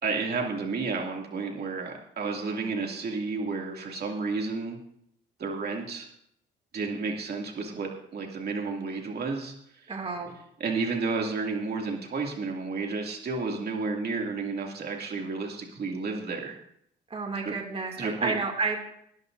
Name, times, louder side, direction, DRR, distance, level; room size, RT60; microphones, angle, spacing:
voice 1, 0.0-4.8 5.4-6.1 6.7-9.5 10.6-16.6 17.4-17.5 18.0-18.3, right 4 dB, 55° right, 0 dB, 2.6 m, -31 dB
voice 2, 9.9-10.3 17.1-18.8, right 4 dB, 30° right, 1 dB, 2.5 m, -31 dB
18.5 x 13.0 x 2.7 m, 0.71 s
cardioid pair, 90°, 20 cm